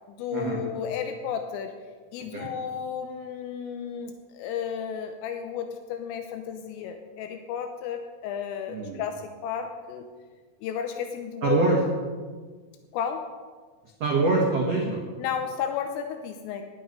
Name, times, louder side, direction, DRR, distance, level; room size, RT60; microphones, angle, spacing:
voice 1, 0.1-1.7 2.1-10.1 10.6-11.6 12.9-13.2 15.2-16.6, left 8 dB, 80° left, 6 dB, 3.4 m, -33 dB
voice 2, 8.7-9.0 11.4-11.8 14.0-15.0, right 3 dB, 80° right, -1 dB, 1.4 m, -24 dB
16.0 x 11.0 x 5.3 m, 1.5 s
omnidirectional pair, 5.9 m